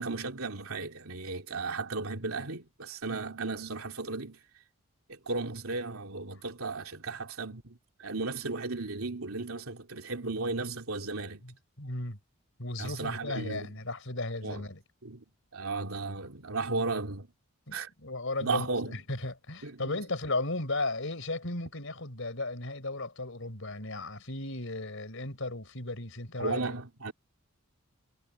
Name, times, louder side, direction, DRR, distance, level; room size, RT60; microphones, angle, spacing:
voice 1, 0.0-4.4 5.1-11.5 12.8-13.8 14.4-14.7 15.0-15.2 15.5-17.3 17.7-17.9 18.4-19.0 19.6-20.0 26.4-27.1, right 3 dB, 75° right, 2.9 m, -35 dB
voice 2, 11.8-12.2 12.6-14.8 17.7-18.7 19.1-26.6, left 2 dB, 60° left, 4.7 m, -35 dB
head